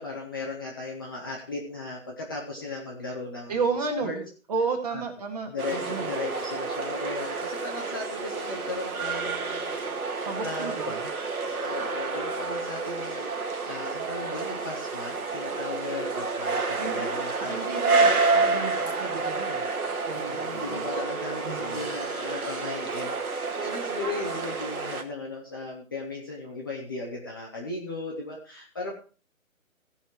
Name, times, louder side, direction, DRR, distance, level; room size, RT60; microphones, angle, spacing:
voice 1, 0.0-3.6 4.0-4.2 4.9-5.0 5.5-11.0 11.4-13.3 13.6-17.8 18.3-18.5 19.1-19.2 20.1-28.9, left 3 dB, 15° left, -2 dB, 0.9 m, -37 dB
voice 2, 3.5-4.2 4.5-6.1 10.2-11.1 16.7-17.1 17.4-19.7 20.1-20.9 21.4-21.8, right 4 dB, 30° right, 4 dB, 1.9 m, -32 dB
sound 1, 5.6-25.0, right 4 dB, 85° right, 2.1 m, -29 dB
16.5 x 5.7 x 4.6 m, 0.36 s
figure-of-eight pair, 160°, 43 cm